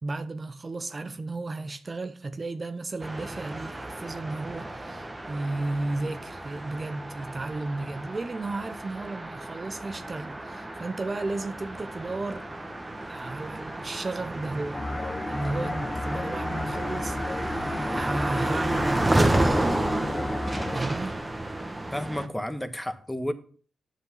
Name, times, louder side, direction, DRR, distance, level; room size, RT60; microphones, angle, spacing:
voice 1, 0.0-12.5 13.1-14.9 15.3-19.1 20.7-21.2, right 2 dB, 40° right, 0.8 m, -34 dB
sound 1, 3.0-22.3, right 1 dB, 20° right, 1.4 m, -31 dB
sound 2, 14.7-20.8, left 2 dB, 30° left, 0.9 m, -33 dB
voice 2, 21.9-23.3, equal, 10° left, 1.3 m, -31 dB
7.9 x 6.3 x 5.8 m
supercardioid pair, 40°, 0 cm